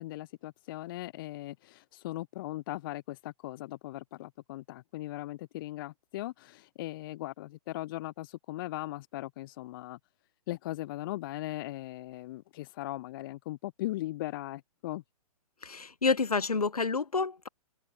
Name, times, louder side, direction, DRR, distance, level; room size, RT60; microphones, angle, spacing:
voice 1, 0.0-10.0 10.5-15.0, left 17 dB, 35° left, 0.7 m, -39 dB
voice 2, 15.6-17.5, left 4 dB, 75° left, 1.4 m, -29 dB
open air
figure-of-eight pair, 115°, 19 cm